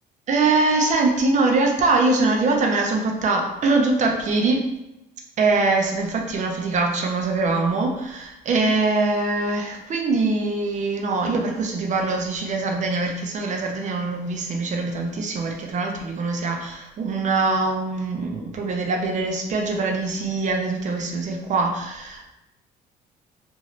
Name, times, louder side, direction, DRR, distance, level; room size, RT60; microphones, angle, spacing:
voice 1, 0.3-4.6 5.4-22.3, right 3 dB, 45° right, 2 dB, 0.6 m, -23 dB
2.7 x 2.5 x 3.1 m, 0.91 s
cardioid pair, 110°, 17 cm